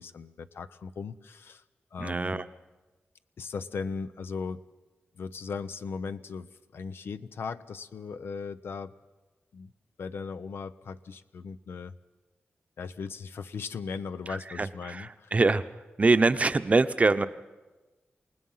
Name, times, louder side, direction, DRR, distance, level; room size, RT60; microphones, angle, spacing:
voice 1, 0.0-1.6 1.9-2.4 3.4-4.6 5.1-9.0 9.5-9.7 10.0-12.0 12.8-15.3, left 5 dB, 85° left, 12 dB, 0.7 m, -38 dB
voice 2, 2.0-2.5 14.3-15.6 16.0-17.3, right 3 dB, 35° right, 11 dB, 0.8 m, -24 dB
28.0 x 18.5 x 5.6 m, 1.2 s
wide cardioid pair, 90°, 4 cm